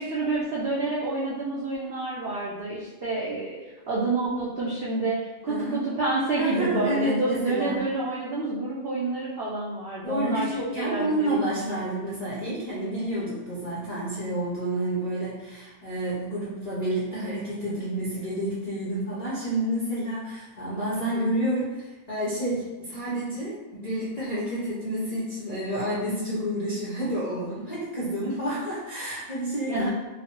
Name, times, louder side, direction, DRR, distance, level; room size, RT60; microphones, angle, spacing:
voice 1, 0.0-3.6 3.9-11.5 29.7-29.9, right 2 dB, 85° right, -6 dB, 0.5 m, -28 dB
voice 2, 5.5-5.8 6.4-7.8 10.0-29.9, right 1 dB, 60° left, -9 dB, 0.4 m, -29 dB
3.0 x 2.1 x 2.9 m, 1.1 s
omnidirectional pair, 1.6 m